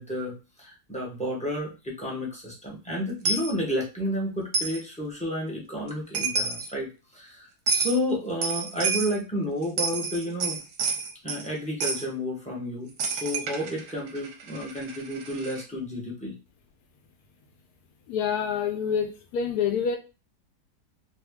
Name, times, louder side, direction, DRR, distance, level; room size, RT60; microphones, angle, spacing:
voice 1, 0.0-10.6 11.2-12.9 13.2-16.3, equal, 10° left, 0.4 m, -31 dB
Coin (dropping), 3.2-3.5 4.5-4.8 5.9-6.0 6.1-6.7 7.7-8.0 8.4-9.2 9.6-11.5 11.8-12.0 13.0-15.6, right 4 dB, 65° right, 0.9 m, -29 dB
voice 2, 18.1-20.0, left 7 dB, 70° left, 1.0 m, -27 dB
2.7 x 2.5 x 3.5 m
omnidirectional pair, 1.8 m